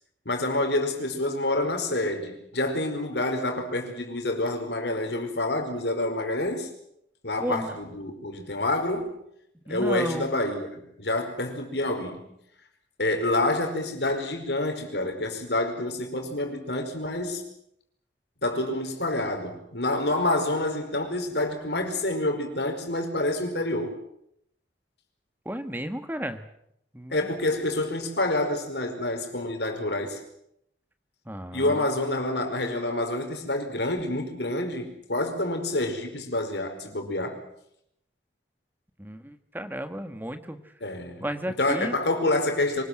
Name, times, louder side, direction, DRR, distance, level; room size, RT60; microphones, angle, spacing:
voice 1, 0.2-6.7 7.2-9.1 9.7-12.3 13.0-17.4 18.4-23.9 27.1-30.2 31.5-37.4 40.8-41.2 41.6-42.8, left 2 dB, 75° left, 4.8 m, -28 dB
voice 2, 7.4-7.8 9.6-10.3 25.4-26.4 26.9-27.3 31.2-31.9 39.0-40.6 41.2-42.0, equal, 10° right, 1.7 m, -33 dB
25.0 x 20.0 x 7.8 m
head